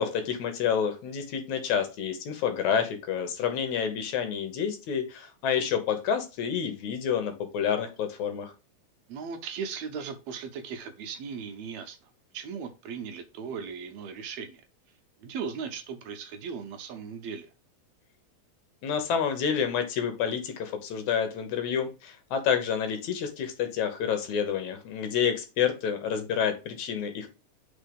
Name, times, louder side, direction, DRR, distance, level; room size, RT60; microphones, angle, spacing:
voice 1, 0.0-8.5 18.8-27.3, left 7 dB, 75° left, 7 dB, 2.4 m, -29 dB
voice 2, 9.1-12.0 12.3-14.6 15.2-17.5, right 6 dB, 75° right, 6 dB, 1.8 m, -37 dB
4.5 x 4.3 x 5.2 m, 0.30 s
omnidirectional pair, 3.4 m